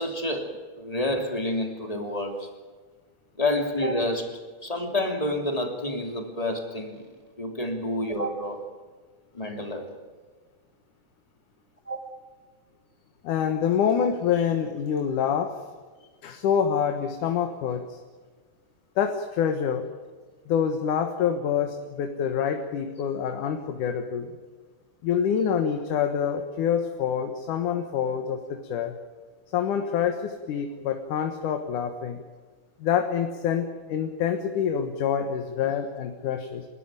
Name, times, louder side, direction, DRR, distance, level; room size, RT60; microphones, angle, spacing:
voice 1, 0.0-2.5 3.4-7.1 7.4-8.6 9.3-9.9 11.9-12.0, left 1 dB, 10° left, 4 dB, 2.7 m, -29 dB
voice 2, 13.2-15.6 16.2-18.0 19.0-19.9 20.5-24.4 25.0-28.9 29.5-32.2 32.8-36.7, left 8 dB, 80° left, 6 dB, 2.8 m, -26 dB
29.0 x 13.0 x 9.0 m, 1.4 s
omnidirectional pair, 3.6 m